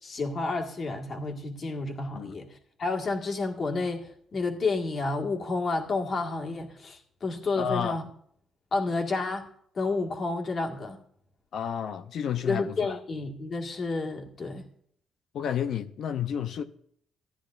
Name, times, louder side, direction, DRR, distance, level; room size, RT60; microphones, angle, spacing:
voice 1, 0.0-8.1 8.7-9.5 9.8-11.0 12.4-14.6, left 3 dB, 45° left, 1.7 m, -30 dB
voice 2, 7.6-8.0 11.5-13.0 15.3-16.6, left 8 dB, 70° left, 0.6 m, -31 dB
15.5 x 10.0 x 2.5 m
cardioid pair, 90°, 0 cm